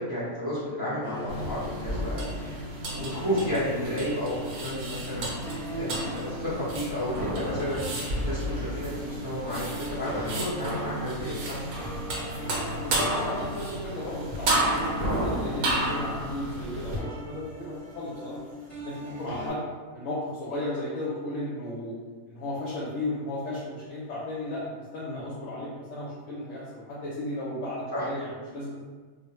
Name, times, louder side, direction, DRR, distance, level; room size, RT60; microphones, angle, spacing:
voice 1, 0.0-2.5 2.9-7.9 8.1-11.6 19.0-19.3 25.1-25.3 27.9-28.1, equal, 25° right, -12 dB, 0.5 m, -32 dB
sound 1, 1.0-19.5, equal, 35° left, 0.5 m, -41 dB
sound 2, 1.3-17.0, right 1 dB, 70° right, 1.0 m, -32 dB
voice 2, 12.8-18.4 18.8-19.6 19.9-21.9 22.3-28.8, left 1 dB, 70° left, -6 dB, 0.8 m, -35 dB
2.4 x 2.0 x 2.9 m, 1.5 s
omnidirectional pair, 1.6 m